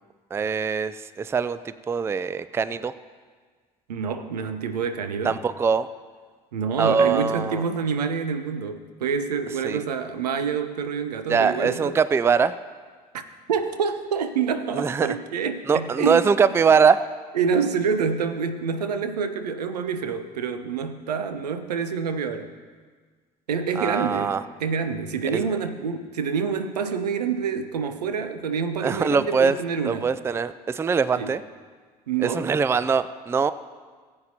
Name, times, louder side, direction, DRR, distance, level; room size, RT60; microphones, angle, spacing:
voice 1, 0.3-2.9 5.2-5.9 6.8-7.6 9.6-9.8 11.3-12.5 14.7-15.2 15.7-17.0 23.7-24.4 25.2-25.6 28.8-29.6 29.8-31.4 32.2-33.5, right 6 dB, 10° right, 15 dB, 0.4 m, -22 dB
voice 2, 3.9-5.4 6.5-11.9 13.1-13.2 13.5-16.3 17.4-22.5 23.5-30.1 31.2-31.3 32.1-32.5, right 6 dB, 75° right, 9 dB, 0.7 m, -27 dB
19.0 x 8.6 x 2.9 m, 1.5 s
figure-of-eight pair, 55°, 21 cm